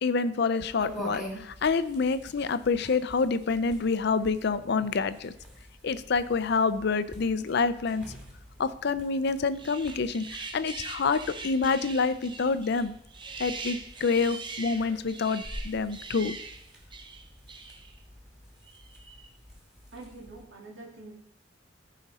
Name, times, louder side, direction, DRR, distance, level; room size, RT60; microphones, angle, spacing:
voice 1, 0.0-5.3 5.8-8.0 8.6-12.9 13.4-16.4, left 4 dB, 60° left, 13 dB, 0.5 m, -27 dB
sound 1, 0.8-20.4, equal, 5° right, 2.3 m, -47 dB
sound 2, 9.5-18.0 18.7-19.3, right 4 dB, 25° right, 0.7 m, -42 dB
voice 2, 19.9-21.1, right 2 dB, 75° right, 0 dB, 2.3 m, -45 dB
14.5 x 5.0 x 4.2 m, 0.73 s
head